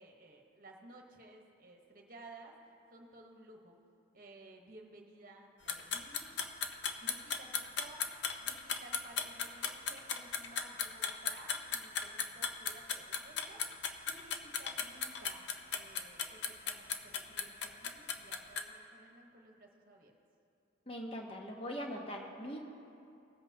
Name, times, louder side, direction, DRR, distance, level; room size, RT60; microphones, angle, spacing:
voice 1, 0.0-2.6 2.9-3.8 4.1-6.3 7.0-8.1 8.4-20.1, right 2 dB, 45° right, 1 dB, 1.1 m, -56 dB
sound 1, 5.7-18.6, left 6 dB, 65° left, 0.6 m, -36 dB
voice 2, 20.9-22.6, equal, 30° left, 0 dB, 1.0 m, -41 dB
19.0 x 7.9 x 2.8 m, 2.6 s
head